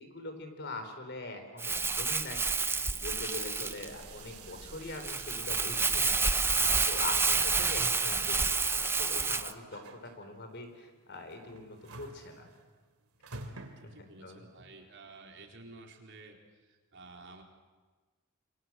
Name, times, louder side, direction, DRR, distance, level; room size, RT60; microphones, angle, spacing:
voice 1, 0.0-2.4 3.0-6.4 6.8-8.4 8.7-12.5 13.8-14.4, left 2 dB, 50° left, 6 dB, 4.4 m, -42 dB
Crumpling crinkling, 1.6-9.5, right 4 dB, 10° right, 0.7 m, -29 dB
sound 1, 3.2-14.4, right 4 dB, 70° right, 2.9 m, -51 dB
voice 2, 3.5-3.8 7.3-7.5 13.8-17.4, right 3 dB, 55° right, 1 dB, 4.1 m, -52 dB
27.5 x 25.5 x 7.7 m, 1.4 s
head